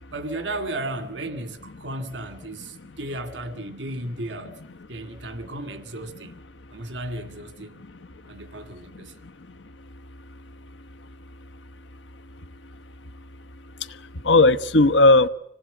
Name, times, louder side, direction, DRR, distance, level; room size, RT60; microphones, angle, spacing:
voice 1, 0.1-4.6 4.9-6.3 6.7-7.8 8.3-9.2, right 1 dB, 85° right, 2.1 m, -34 dB
voice 2, 8.9-9.3 13.8-15.3, left 2 dB, 90° left, 1.0 m, -18 dB
26.0 x 18.5 x 9.0 m
head